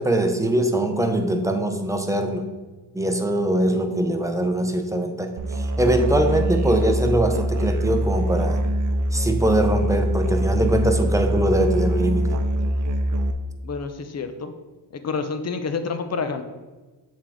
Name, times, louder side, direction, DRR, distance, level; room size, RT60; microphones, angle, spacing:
voice 1, 0.0-2.5 2.9-8.6 9.1-12.4, right 1 dB, 10° right, 5 dB, 0.7 m, -22 dB
Musical instrument, 5.4-13.3, equal, 50° right, 0.7 m, -23 dB
voice 2, 13.6-14.5 15.0-16.4, left 4 dB, 40° left, 9 dB, 0.7 m, -28 dB
7.2 x 3.7 x 3.6 m, 1.2 s
cardioid pair, 75°, 40 cm